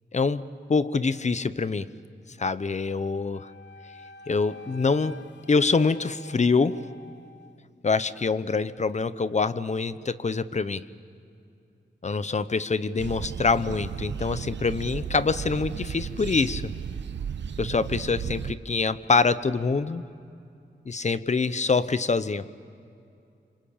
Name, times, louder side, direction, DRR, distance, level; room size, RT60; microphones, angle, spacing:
voice 1, 0.1-1.9 2.4-3.5 4.3-5.2 5.5-6.8 7.8-10.8 12.0-16.7 17.6-20.0 20.9-22.5, left 4 dB, 40° left, 15 dB, 0.9 m, -25 dB
Wind instrument woodwind instrument, 3.3-7.6, left 1 dB, 75° left, 1.1 m, -47 dB
sound 1, 13.0-18.6, right 7 dB, 80° right, 0.8 m, -34 dB
26.5 x 25.0 x 8.8 m, 2.5 s
wide cardioid pair, 90°, 18 cm